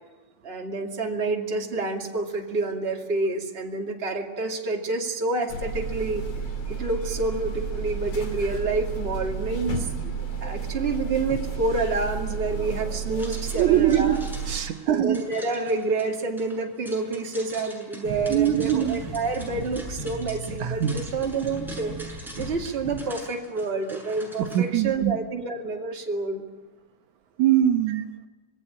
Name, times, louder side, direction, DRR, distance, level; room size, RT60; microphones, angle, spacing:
voice 1, 0.4-6.3 6.8-10.1 10.4-14.2 14.9-26.4 27.9-28.0, right 3 dB, 20° right, 1 dB, 2.3 m, -28 dB
sound 1, 5.5-14.6, right 5 dB, 50° left, 3.8 m, -31 dB
sound 2, 13.2-24.6, right 1 dB, ahead, 7.1 m, -44 dB
voice 2, 13.6-15.2 18.3-19.0 20.6-21.0 24.5-25.1 27.4-28.1, right 11 dB, 70° right, 5 dB, 2.4 m, -22 dB
sound 3, 18.0-23.1, right 3 dB, 35° right, 2.1 m, -37 dB
26.5 x 19.5 x 8.9 m, 1.2 s
omnidirectional pair, 3.6 m